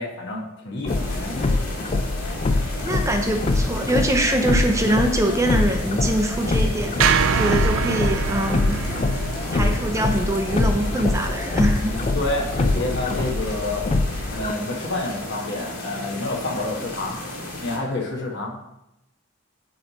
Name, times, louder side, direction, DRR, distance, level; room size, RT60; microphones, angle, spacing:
voice 1, 0.0-1.5 12.1-13.9 14.3-17.2 17.6-18.6, left 2 dB, 55° left, -1 dB, 1.3 m, -28 dB
sound 1, 0.8-14.5, left 2 dB, 30° left, 0.3 m, -24 dB
sound 2, 0.9-17.8, left 1 dB, 75° left, 2.2 m, -34 dB
voice 2, 2.8-8.8 9.5-12.0, right 1 dB, 15° right, 4 dB, 0.6 m, -23 dB
sound 3, 7.0-11.3, right 7 dB, 70° right, 0.4 m, -25 dB
9.2 x 3.2 x 4.0 m, 0.85 s
head